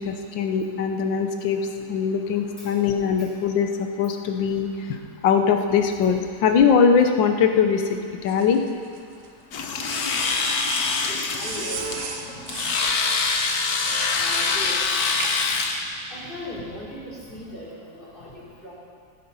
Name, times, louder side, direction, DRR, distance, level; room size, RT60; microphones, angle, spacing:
voice 1, 0.0-1.6 1.9-4.7 5.2-8.6, left 6 dB, 85° left, 6 dB, 1.6 m, -21 dB
sound 1, 8.3-9.3 9.9-11.1 11.4-14.6 15.2-15.6, right 6 dB, 90° right, 1.7 m, -35 dB
Domestic sounds home sounds, 9.5-15.8, left 4 dB, 60° left, 1.3 m, -25 dB
voice 2, 11.1-12.0 14.1-15.0 16.1-17.0 17.3-17.7 17.9-18.3 18.6-18.7, equal, 30° left, -8 dB, 3.7 m, -37 dB
16.5 x 8.8 x 5.5 m, 2.2 s
omnidirectional pair, 2.0 m